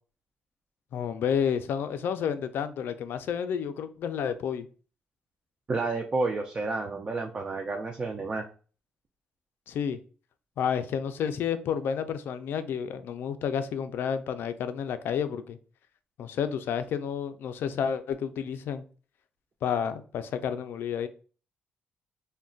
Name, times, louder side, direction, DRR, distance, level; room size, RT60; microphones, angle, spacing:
voice 1, 0.9-4.7 9.7-10.0 10.6-15.6 16.2-18.8 19.6-21.1, left 8 dB, 65° left, 10 dB, 0.3 m, -30 dB
voice 2, 5.7-8.4, right 3 dB, 30° right, 3 dB, 0.3 m, -30 dB
2.3 x 2.1 x 3.7 m, 0.38 s
cardioid pair, 130°, 4 cm